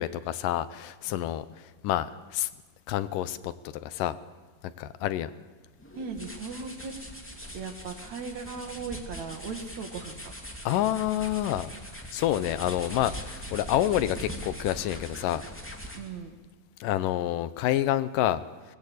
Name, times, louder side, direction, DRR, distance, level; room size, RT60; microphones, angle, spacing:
voice 1, 0.0-1.5 1.8-2.5 2.9-3.5 3.8-4.2 4.8-5.3 10.7-11.7 12.1-15.4 16.8-18.4, left 12 dB, 75° left, 15 dB, 2.4 m, -28 dB
sound 1, 5.8-16.2, equal, 5° left, 1.9 m, -41 dB
voice 2, 5.9-6.9 7.5-10.3 16.0-16.3, right 5 dB, 55° right, 5 dB, 2.9 m, -37 dB
23.5 x 20.5 x 8.3 m, 1.3 s
omnidirectional pair, 4.0 m